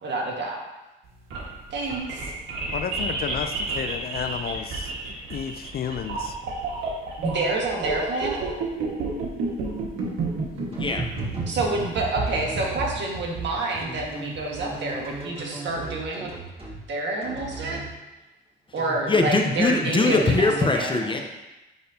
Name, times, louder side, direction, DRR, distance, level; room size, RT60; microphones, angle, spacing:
voice 1, 0.0-0.6 1.7-2.2 7.2-8.5 11.4-16.3 16.9-17.9 18.7-21.2, right 2 dB, 65° right, -2 dB, 1.6 m, -28 dB
sound 1, 1.1-15.2, right 3 dB, 85° right, 1.6 m, -31 dB
voice 2, 2.7-4.9 5.3-6.4, left 8 dB, 50° left, 9 dB, 0.4 m, -31 dB
voice 3, 10.7-11.1 19.1-21.2, left 3 dB, 25° left, 3 dB, 0.8 m, -22 dB
sound 2, 10.7-11.8 12.3-12.9 13.8-16.8 17.2-17.9 18.8-20.6, right 2 dB, 30° right, 2.2 m, -37 dB
10.0 x 3.9 x 2.8 m, 1.0 s
cardioid pair, 90°, 20 cm